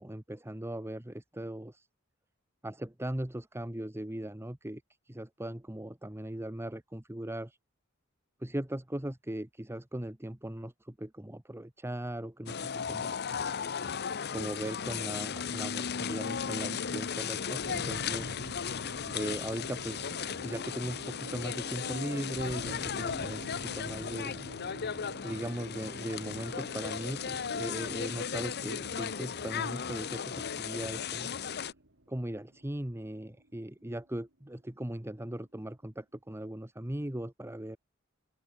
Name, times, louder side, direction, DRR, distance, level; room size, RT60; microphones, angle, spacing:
voice 1, 0.0-1.9 2.6-7.6 8.4-13.2 14.3-18.3 19.1-24.4 25.2-31.3 32.1-37.8, right 1 dB, 10° right, 1.1 m, -39 dB
sound 1, 12.5-31.7, left 7 dB, 55° left, 0.8 m, -36 dB
sound 2, 17.6-34.0, right 1 dB, 60° right, 4.0 m, -47 dB
open air
head